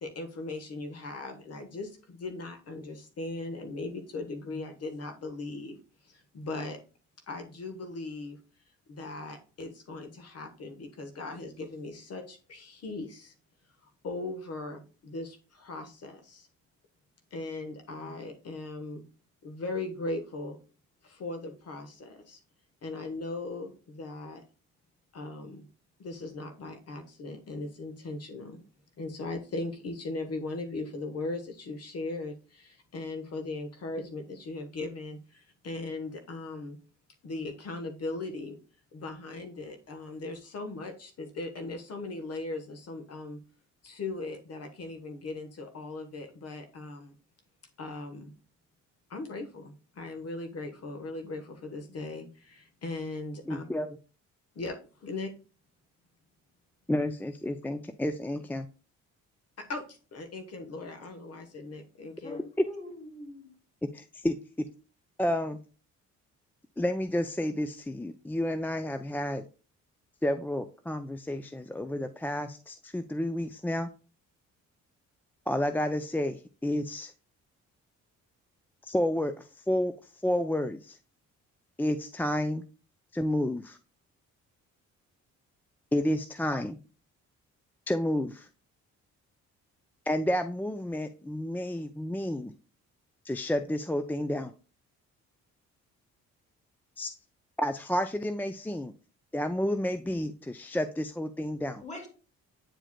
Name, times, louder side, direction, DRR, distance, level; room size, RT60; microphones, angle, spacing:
voice 1, 0.0-5.8 6.0-6.8 7.3-8.4 8.9-13.3 13.8-16.5 17.3-19.0 19.4-20.6 21.0-22.4 22.8-24.4 25.1-25.7 26.0-28.6 29.0-36.8 37.2-38.6 38.9-43.4 43.8-47.2 47.8-48.3 49.1-53.7 54.5-55.3 59.6-62.4, left 2 dB, 55° left, 6 dB, 1.2 m, -38 dB
voice 2, 53.5-53.9 56.9-58.7 63.9-64.4 65.2-65.6 66.8-69.4 70.2-73.9 75.5-77.1 78.8-79.9 80.2-81.0 81.8-82.6 83.1-83.8 85.9-86.8 87.9-88.5 90.1-92.5 93.2-94.5 97.0-97.1 97.6-98.9 99.3-101.8, left 1 dB, 5° left, 9 dB, 0.3 m, -30 dB
voice 3, 62.2-63.4 101.8-102.1, left 1 dB, 25° left, 2 dB, 2.2 m, -42 dB
8.9 x 4.8 x 2.2 m, 0.36 s
cardioid pair, 90°, 30 cm